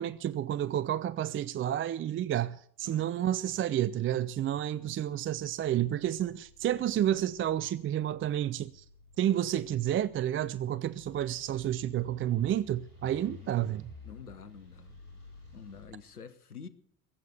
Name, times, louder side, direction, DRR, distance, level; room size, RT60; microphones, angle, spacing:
voice 1, 0.0-8.8 9.2-13.9, right 11 dB, 30° right, 0.5 m, -30 dB
voice 2, 2.8-3.3 4.7-5.2 13.4-13.7 14.0-15.0 15.5-16.7, left 6 dB, 90° left, 0.9 m, -49 dB
sound 1, 5.1-15.9, left 4 dB, 90° right, 5.0 m, -54 dB
21.5 x 8.3 x 6.9 m
figure-of-eight pair, 60°, 43 cm